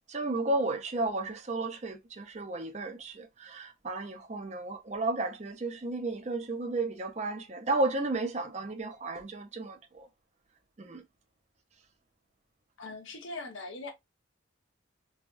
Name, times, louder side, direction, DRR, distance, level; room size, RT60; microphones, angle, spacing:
voice 1, 0.1-10.1 10.8-11.0, right 2 dB, 35° right, 0.5 m, -33 dB
voice 2, 12.8-13.9, left 3 dB, 70° left, 0.8 m, -40 dB
3.4 x 2.2 x 2.4 m
head